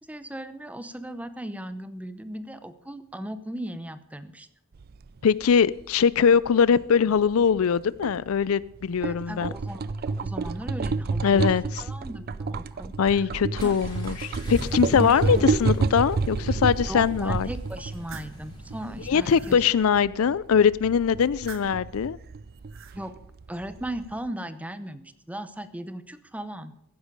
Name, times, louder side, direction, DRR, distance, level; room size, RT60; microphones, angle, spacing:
voice 1, 0.0-4.5 9.0-11.5 11.8-13.3 13.6-13.7 14.9-15.6 16.8-19.6 22.9-23.2 23.5-26.7, right 1 dB, 5° right, 0.7 m, -37 dB
sound 1, 4.7-24.3, right 4 dB, 45° right, 0.4 m, -30 dB
voice 2, 5.2-9.5 11.2-11.8 13.0-17.5 19.1-22.2, left 6 dB, 70° left, 0.4 m, -22 dB
Accelerating revving vroom, 12.9-19.5, equal, 20° left, 4.9 m, -40 dB
sound 2, 17.7-18.4 19.0-19.6 21.2-21.9 22.5-23.0, right 7 dB, 60° right, 1.0 m, -46 dB
15.0 x 10.0 x 5.3 m
head